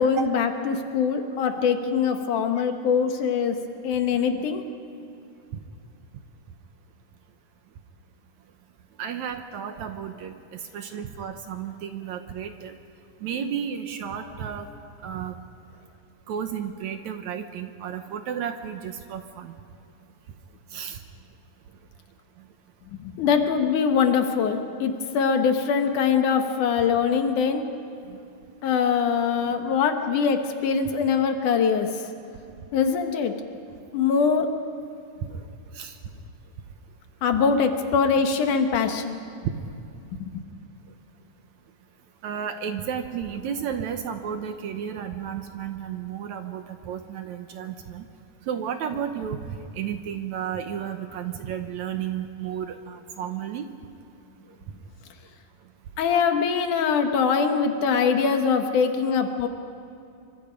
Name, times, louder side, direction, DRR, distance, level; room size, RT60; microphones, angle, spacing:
voice 1, 0.0-3.6 3.8-4.6 23.0-27.6 28.6-32.0 32.7-33.3 33.9-34.5 37.2-39.2 40.2-40.4 56.0-59.5, left 6 dB, 70° left, 6 dB, 2.7 m, -23 dB
voice 2, 9.0-12.8 13.2-14.7 15.0-15.4 16.3-19.5 20.7-21.0 22.4-22.5 28.1-28.3 35.2-35.5 35.7-36.0 39.5-39.8 42.2-48.1 48.4-53.7 54.4-54.6, right 8 dB, 70° right, 7 dB, 2.0 m, -33 dB
26.0 x 24.5 x 5.2 m, 2.6 s
omnidirectional pair, 3.9 m